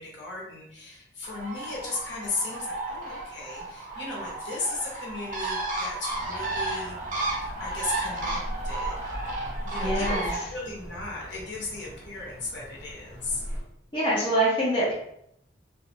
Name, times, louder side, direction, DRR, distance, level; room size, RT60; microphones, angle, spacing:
voice 1, 0.0-8.4 8.6-8.9 9.6-13.4, left 3 dB, 70° left, -4 dB, 0.9 m, -36 dB
Bird, 1.2-10.4, right 2 dB, 45° right, 0.5 m, -33 dB
sound 1, 6.1-13.6, equal, 10° right, 0.7 m, -38 dB
voice 2, 9.8-10.3 13.9-14.9, right 1 dB, 25° left, -7 dB, 0.7 m, -24 dB
2.5 x 2.3 x 2.9 m, 0.75 s
head